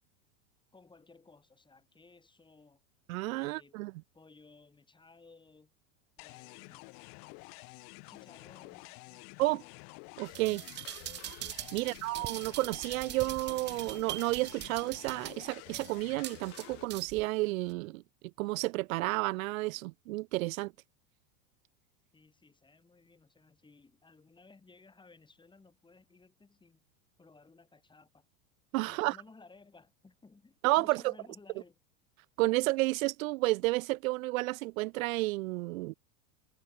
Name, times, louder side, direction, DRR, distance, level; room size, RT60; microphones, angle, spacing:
voice 1, 0.7-2.8 3.3-3.8 4.1-5.7 6.2-7.0 8.1-9.3 11.7-12.1 22.1-26.8 27.2-28.3 28.8-31.8, left 3 dB, 10° left, 4.9 m, -59 dB
voice 2, 3.1-3.9 9.4-9.6 10.2-10.6 11.7-18.0 18.4-20.7 28.7-29.2 30.6-31.1 32.4-35.9, right 21 dB, 75° right, 0.5 m, -31 dB
sound 1, 6.2-16.8, left 40 dB or more, 45° left, 0.5 m, -50 dB
sound 2, 10.3-17.3 17.7-17.8, right 14 dB, 25° right, 0.6 m, -43 dB
supercardioid pair, 115°, 42 cm